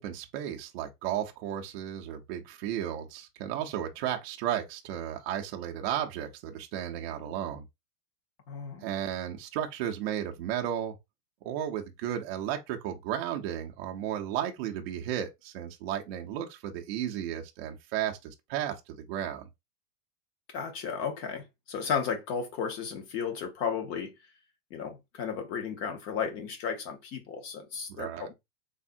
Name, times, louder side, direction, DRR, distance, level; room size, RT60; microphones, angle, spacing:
voice 1, 0.0-7.6 8.8-11.0 11.4-19.5 27.9-28.3, right 10 dB, 40° right, 0.5 m, -34 dB
voice 2, 8.5-8.9 20.5-24.1 24.7-28.3, left 6 dB, 30° left, 0.6 m, -34 dB
3.5 x 2.0 x 2.5 m
supercardioid pair, 140°, 48 cm